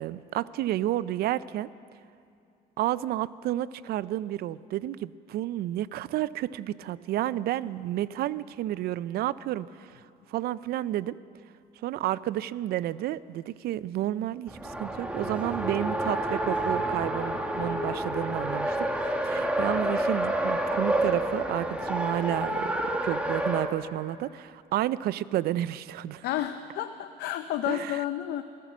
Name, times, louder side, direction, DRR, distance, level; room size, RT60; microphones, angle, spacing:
voice 1, 0.0-1.7 2.8-10.0 10.3-11.2 11.8-22.7 23.0-26.2 27.7-28.0, right 13 dB, 65° right, 18 dB, 0.4 m, -31 dB
Race car auto racing, 14.5-23.7, right 1 dB, 5° right, 1.3 m, -29 dB
voice 2, 26.2-28.4, left 12 dB, 75° left, 9 dB, 0.6 m, -31 dB
16.0 x 14.0 x 6.1 m, 2.5 s
cardioid pair, 110°, 17 cm